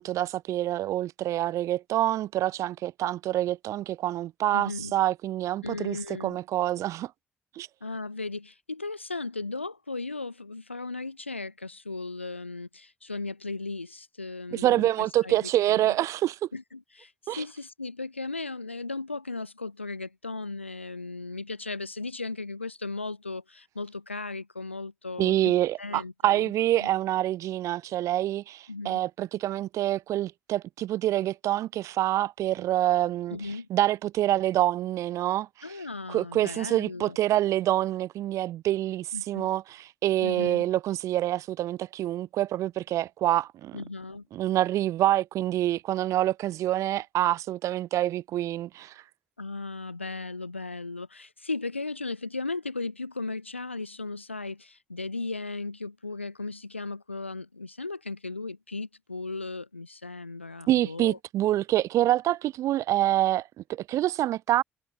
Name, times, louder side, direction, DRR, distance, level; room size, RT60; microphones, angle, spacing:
voice 1, 0.0-6.0 6.2-7.1 7.6-7.7 14.5-16.5 17.3-17.4 25.2-33.4 33.7-35.5 36.1-43.8 44.3-48.9 60.7-64.6, right 13 dB, 55° right, 0.7 m, -26 dB
voice 2, 4.5-4.9 5.6-6.4 7.8-15.9 16.5-26.5 26.8-26.9 28.7-29.0 33.3-33.7 35.6-37.2 39.1-39.5 40.2-40.6 43.7-44.3 49.4-61.2, left 3 dB, 90° left, 2.8 m, -36 dB
figure-of-eight pair, 45°, 6 cm